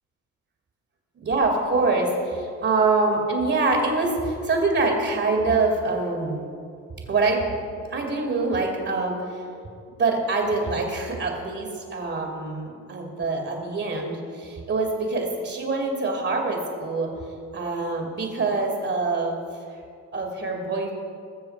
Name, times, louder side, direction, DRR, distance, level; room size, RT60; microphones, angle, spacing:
voice 1, 1.2-6.4 7.1-7.6 7.9-9.4 10.0-17.1 17.5-19.4 19.7-19.8 20.1-20.9, right 3 dB, 45° right, 0 dB, 2.4 m, -25 dB
21.0 x 7.1 x 4.6 m, 2.4 s
cardioid pair, 90°, 30 cm